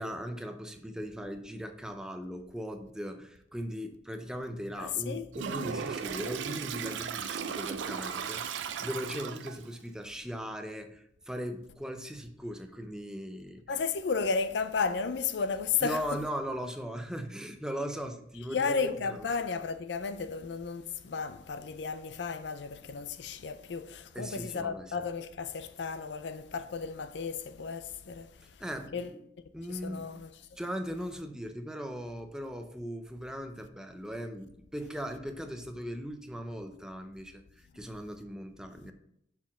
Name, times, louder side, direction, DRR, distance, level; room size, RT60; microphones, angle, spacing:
voice 1, 0.0-13.6 15.8-19.2 24.1-24.9 28.4-28.9 29.5-30.0 30.6-38.9, equal, 5° right, 0.5 m, -39 dB
voice 2, 4.8-5.3 13.7-16.2 18.5-28.5 28.9-29.1 29.7-30.4, left 5 dB, 65° left, 0.4 m, -33 dB
Toilet flush, 5.3-9.7, right 6 dB, 75° right, 0.5 m, -36 dB
5.8 x 4.5 x 6.0 m
head